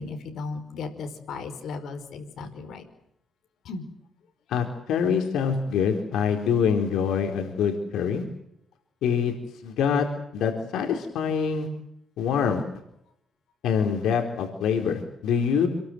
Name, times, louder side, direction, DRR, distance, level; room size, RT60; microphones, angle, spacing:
voice 1, 0.0-2.9 3.6-3.9, left 4 dB, 65° left, 6 dB, 5.0 m, -36 dB
voice 2, 4.5-8.2 9.0-9.3 9.6-10.1 10.3-11.7 12.2-12.6 13.6-15.7, left 7 dB, 85° left, 3 dB, 4.2 m, -25 dB
28.0 x 22.0 x 7.9 m, 0.76 s
cardioid pair, 135°, 0 cm